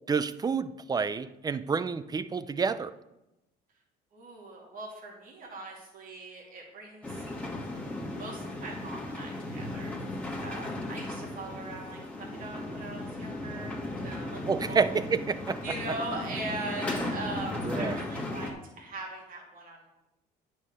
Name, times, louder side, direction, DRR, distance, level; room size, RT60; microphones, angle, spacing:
voice 1, 0.1-2.9 14.4-15.6 17.6-18.0, right 5 dB, 25° right, 15 dB, 0.5 m, -29 dB
voice 2, 4.1-7.3 8.2-9.9 10.4-13.8 14.0-14.4 14.7-15.0 15.6-19.9, right 2 dB, 55° right, -2 dB, 2.9 m, -40 dB
sound 1, 7.0-18.5, left 2 dB, 10° left, 2.0 m, -36 dB
9.4 x 5.5 x 6.7 m, 0.94 s
cardioid pair, 110°, 17 cm